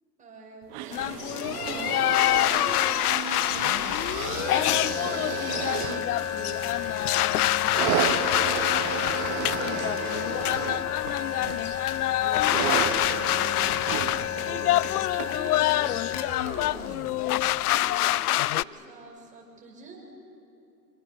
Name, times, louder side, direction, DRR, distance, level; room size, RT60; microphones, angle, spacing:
voice 1, 0.2-20.0, right 3 dB, 15° right, -1 dB, 6.2 m, -45 dB
sound 1, 0.7-16.2 17.0-17.1, right 11 dB, 35° right, 1.5 m, -34 dB
sound 2, 0.9-18.6, left 15 dB, 65° left, 0.6 m, -26 dB
sound 3, 3.3-17.9, left 9 dB, 30° left, 1.7 m, -33 dB
25.5 x 25.0 x 7.0 m, 2.7 s
hypercardioid pair, 120°, 49 cm